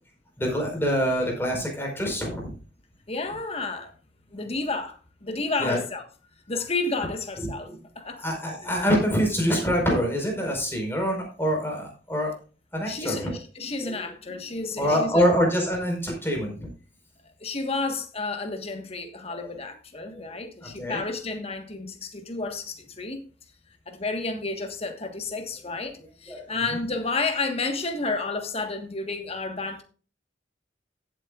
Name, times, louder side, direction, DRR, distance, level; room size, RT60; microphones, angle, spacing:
voice 1, 0.4-2.5 5.6-5.8 7.4-7.8 8.2-12.3 12.7-13.4 13.8-14.0 14.3-14.4 14.8-16.7 19.3-19.4 20.1-20.5 20.8-21.0 26.3-26.6, equal, 15° left, 4.6 m, -26 dB
voice 2, 3.1-3.9 4.3-6.0 6.5-8.3 12.8-15.2 17.4-23.2 23.9-29.8, left 3 dB, 35° left, 1.5 m, -31 dB
15.5 x 8.2 x 2.4 m
head